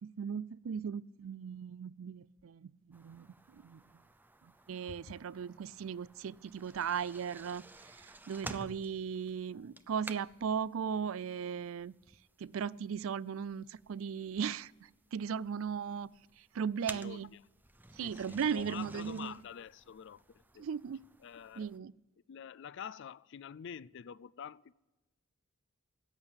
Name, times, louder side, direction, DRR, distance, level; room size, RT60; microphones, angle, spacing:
voice 1, 0.0-3.3 3.5-3.8 4.7-7.6 8.3-11.9 12.4-14.7 15.1-16.1 16.5-17.3 18.0-19.3 20.6-21.0 21.6-21.9, right 7 dB, 70° right, 0.4 m, -37 dB
sound 1, 2.9-21.8, right 2 dB, 10° right, 0.5 m, -53 dB
voice 2, 16.9-17.4 18.0-20.7 21.2-21.7 22.3-24.7, left 8 dB, 60° left, 0.4 m, -47 dB
14.0 x 8.9 x 8.6 m
head